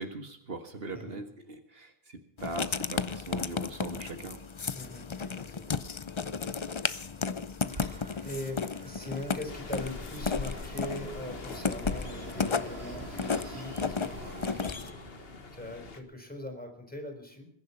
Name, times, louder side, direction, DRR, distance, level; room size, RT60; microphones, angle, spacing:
voice 1, 0.0-4.4, right 2 dB, 70° right, 6 dB, 1.9 m, -40 dB
Writing, 2.4-14.9, left 5 dB, 35° left, 0.6 m, -34 dB
voice 2, 4.7-5.8 8.2-14.8 15.5-17.5, left 1 dB, 10° left, 4 dB, 4.1 m, -41 dB
Fixed-wing aircraft airplane, 7.7-15.5, right 2 dB, 90° right, 2.9 m, -46 dB
sound 1, 9.5-16.0, left 3 dB, 70° left, 1.7 m, -42 dB
21.0 x 10.5 x 5.7 m, 0.68 s
omnidirectional pair, 1.0 m